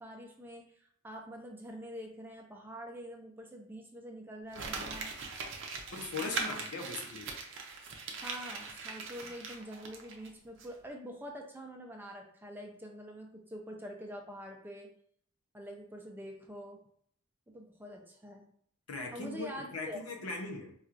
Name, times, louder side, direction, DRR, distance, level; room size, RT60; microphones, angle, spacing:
voice 1, 0.0-5.1 6.3-7.0 8.2-14.9 15.5-16.8 17.5-18.5 19.1-20.0, equal, 10° right, 2 dB, 0.4 m, -46 dB
Crumpling crinkling, 4.5-10.3 10.6-10.7, right 4 dB, 60° right, 0.5 m, -40 dB
voice 2, 5.9-7.3 18.9-20.7, left 3 dB, 90° left, 1 dB, 0.7 m, -39 dB
4.3 x 2.3 x 2.5 m, 0.64 s
head